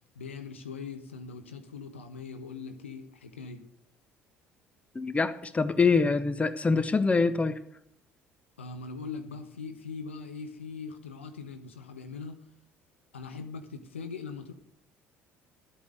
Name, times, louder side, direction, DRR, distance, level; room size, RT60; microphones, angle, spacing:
voice 1, 0.1-3.6 8.6-12.4 13.1-14.5, left 5 dB, 80° left, 7 dB, 1.2 m, -41 dB
voice 2, 4.9-7.6, left 4 dB, 20° left, 13 dB, 1.0 m, -25 dB
13.0 x 8.4 x 6.5 m, 0.67 s
figure-of-eight pair, 55°, 6 cm